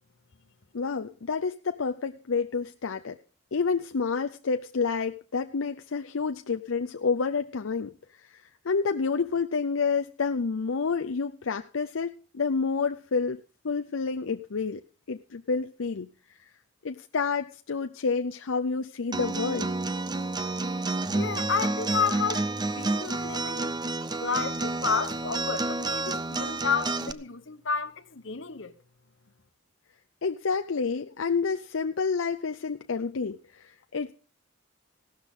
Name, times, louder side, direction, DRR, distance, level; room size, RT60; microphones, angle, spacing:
voice 1, 0.7-3.2 3.5-13.4 13.6-14.8 15.1-16.4 16.8-19.7 30.2-34.1, left 5 dB, 85° left, 0.6 m, -29 dB
Acoustic guitar, 19.1-27.1, right 2 dB, 20° right, 0.7 m, -30 dB
voice 2, 21.1-23.8 24.2-28.7, left 5 dB, 65° left, 1.2 m, -31 dB
16.0 x 12.5 x 3.7 m
head